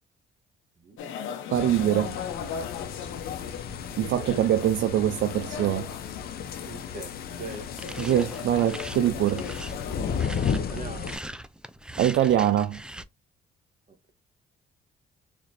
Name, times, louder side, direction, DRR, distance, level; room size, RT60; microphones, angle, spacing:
sound 1, 1.0-10.2, left 8 dB, 90° left, 0.9 m, -37 dB
sound 2, 1.5-11.2, left 6 dB, 50° left, 0.7 m, -35 dB
voice 1, 1.5-2.2 4.0-5.9 8.0-9.4 12.0-12.8, right 12 dB, 70° right, 0.5 m, -23 dB
voice 2, 6.6-7.7 10.6-11.1, right 3 dB, 40° right, 1.7 m, -40 dB
sound 3, 7.5-13.0, right 1 dB, 5° right, 0.4 m, -41 dB
4.3 x 3.0 x 2.6 m
cardioid pair, 90°, 20 cm